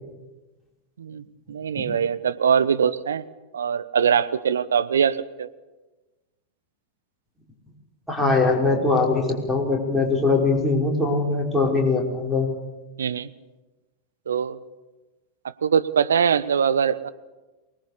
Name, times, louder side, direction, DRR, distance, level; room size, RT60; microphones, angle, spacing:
voice 1, 1.5-3.2 3.5-5.5 13.0-13.3 14.3-14.6 15.6-17.1, right 7 dB, 65° right, 13 dB, 1.0 m, -22 dB
voice 2, 8.1-12.5, left 3 dB, ahead, -1 dB, 5.7 m, -21 dB
24.0 x 20.0 x 6.8 m, 1.1 s
figure-of-eight pair, 90°, 0 cm